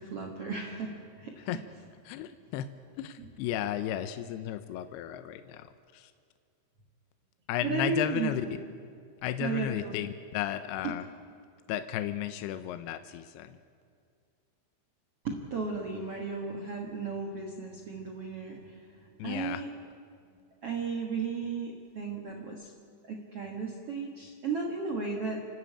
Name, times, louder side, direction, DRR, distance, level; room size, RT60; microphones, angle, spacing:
voice 1, 0.0-1.6 3.2-3.3 7.6-8.5 9.4-10.0 10.8-10.9 15.2-19.7 20.6-22.7 23.0-25.4, right 4 dB, 50° right, 0 dB, 1.8 m, -35 dB
voice 2, 2.1-2.7 3.0-6.1 7.5-8.5 9.2-11.1 11.7-13.6 19.2-19.6, left 11 dB, 80° left, 10 dB, 2.6 m, -34 dB
29.0 x 12.5 x 8.7 m, 2.3 s
omnidirectional pair, 4.8 m